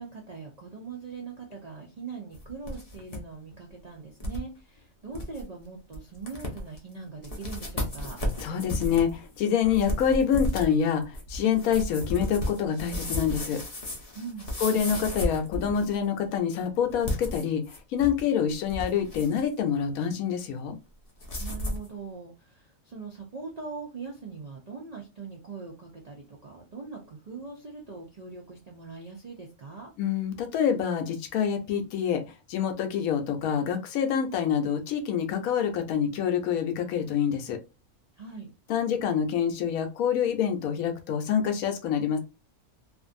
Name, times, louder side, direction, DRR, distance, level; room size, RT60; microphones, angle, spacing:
voice 1, 0.0-8.2 14.1-14.5 21.4-29.9 38.2-38.5, right 5 dB, 70° right, -1 dB, 0.3 m, -41 dB
sound 1, 2.3-3.2 3.5-3.6 4.2-4.4 4.8-4.9 5.1-5.4 5.9-6.0 6.3-6.8 7.2-16.0 16.9-18.2 18.5-19.5 21.2-21.9, left 1 dB, 40° left, 0.5 m, -33 dB
voice 2, 8.4-13.6 14.6-17.6 17.9-20.8 30.0-32.2 32.5-37.6 38.7-42.2, left 8 dB, 80° left, 6 dB, 1.0 m, -26 dB
2.5 x 2.5 x 2.5 m, 0.28 s
omnidirectional pair, 1.5 m